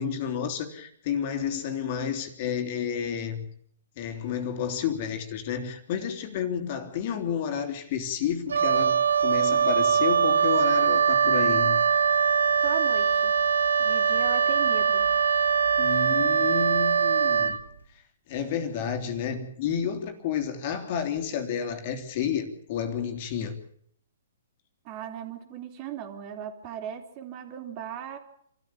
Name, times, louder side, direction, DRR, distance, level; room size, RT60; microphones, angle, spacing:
voice 1, 0.0-3.5 4.0-11.8 15.8-17.6 18.3-23.6, left 8 dB, 45° left, 7 dB, 3.3 m, -30 dB
Wind instrument woodwind instrument, 8.5-17.6, right 6 dB, 75° right, 1.6 m, -22 dB
voice 2, 12.6-13.3 13.8-15.1 24.8-28.2, right 9 dB, 35° right, 5 dB, 4.0 m, -38 dB
27.5 x 14.0 x 8.8 m, 0.67 s
figure-of-eight pair, 125°, 0 cm